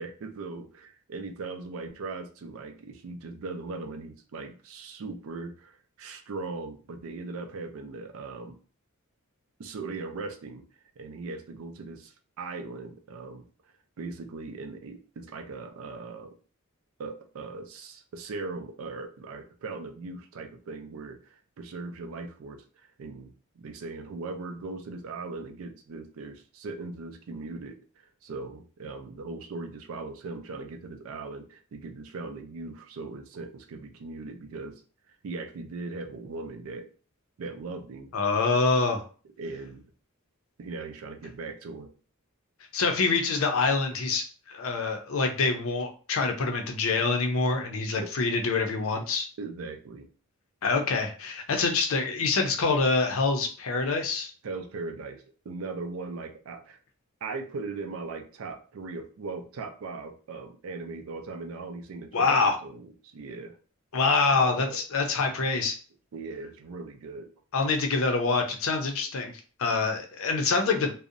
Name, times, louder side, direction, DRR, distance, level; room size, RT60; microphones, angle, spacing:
voice 1, 0.0-8.6 9.6-10.6 11.0-13.5 14.0-16.4 17.0-22.6 23.0-27.8 28.2-34.8 35.2-36.9 37.4-38.1 39.4-39.9 40.6-41.9 48.0-48.1 49.0-49.1 49.4-50.1 54.4-56.8 57.2-63.6 64.3-64.8 66.1-67.3, right 3 dB, 70° right, 6 dB, 0.4 m, -39 dB
voice 2, 38.1-39.0 42.7-49.3 50.6-54.3 62.1-62.6 63.9-65.8 67.5-69.3 69.6-70.9, left 4 dB, 65° left, 4 dB, 0.5 m, -25 dB
2.6 x 2.0 x 2.5 m, 0.38 s
head